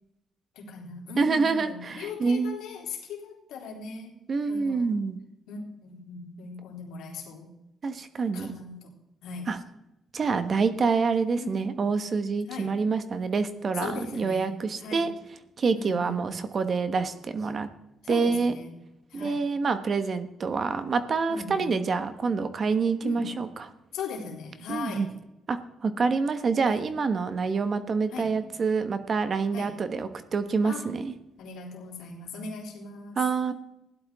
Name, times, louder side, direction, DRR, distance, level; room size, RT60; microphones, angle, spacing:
voice 1, 0.5-4.1 4.5-4.9 5.5-7.5 8.3-8.9 9.2-9.6 11.3-11.9 12.5-12.7 13.7-14.5 14.8-15.1 15.7-16.2 18.0-18.7 19.1-19.4 21.3-21.8 23.0-23.3 23.9-25.0 26.6-26.8 28.1-28.3 29.5-29.7 30.6-30.9 31.4-33.2, left 4 dB, 85° left, -1 dB, 3.3 m, -39 dB
voice 2, 1.2-2.6 4.3-5.2 7.8-8.5 9.5-9.6 10.1-15.1 15.6-17.7 18.1-18.6 19.1-23.7 24.7-25.1 25.5-31.1 33.2-33.5, right 4 dB, 45° right, 10 dB, 1.3 m, -27 dB
16.5 x 11.5 x 3.6 m, 0.88 s
cardioid pair, 90°, 0 cm